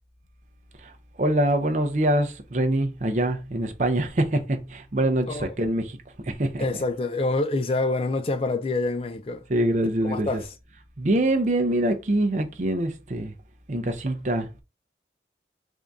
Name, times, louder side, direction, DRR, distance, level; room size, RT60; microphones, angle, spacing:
voice 1, 1.2-6.0 6.2-6.6 9.5-10.4 11.0-13.3 13.7-14.6, right 1 dB, 45° right, 0.6 m, -24 dB
voice 2, 6.6-9.5 10.0-10.5, left 2 dB, 30° left, 0.4 m, -26 dB
3.6 x 2.6 x 3.5 m
head